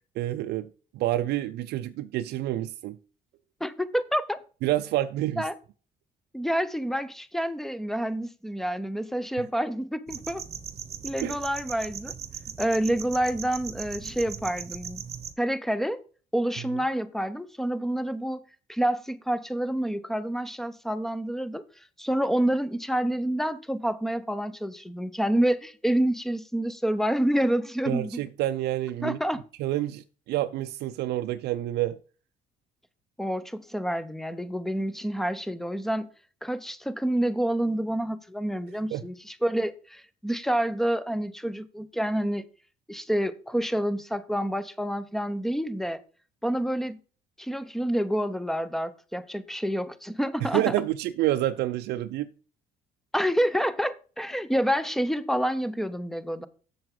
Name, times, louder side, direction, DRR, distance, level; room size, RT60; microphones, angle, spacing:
voice 1, 0.2-0.7 0.9-3.0 4.6-5.5 11.2-11.4 27.9-29.2 29.6-32.0 38.9-39.0 50.4-52.3, right 14 dB, 75° right, 0.5 m, -28 dB
voice 2, 3.6-4.4 5.4-5.5 6.3-10.4 11.0-12.1 12.6-15.0 15.4-16.0 16.3-18.4 18.7-21.6 22.0-28.2 29.0-29.4 33.2-36.1 36.4-42.4 42.9-46.0 46.4-47.0 47.4-50.6 53.1-56.5, right 1 dB, ahead, 0.7 m, -28 dB
sound 1, 10.1-15.3, right 7 dB, 40° right, 1.0 m, -39 dB
7.6 x 7.0 x 3.8 m
cardioid pair, 110°, 17 cm